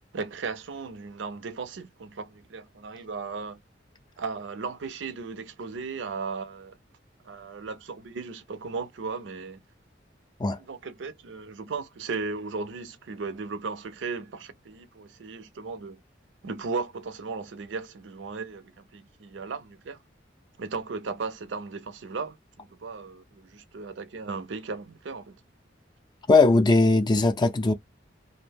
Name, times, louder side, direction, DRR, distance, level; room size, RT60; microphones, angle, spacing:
voice 1, 0.1-3.6 4.2-6.8 7.2-9.6 10.5-16.0 16.4-20.0 20.6-25.4, right 4 dB, 75° right, 0.5 m, -36 dB
voice 2, 26.3-27.7, left 3 dB, 25° left, 0.4 m, -19 dB
2.5 x 2.1 x 3.3 m
head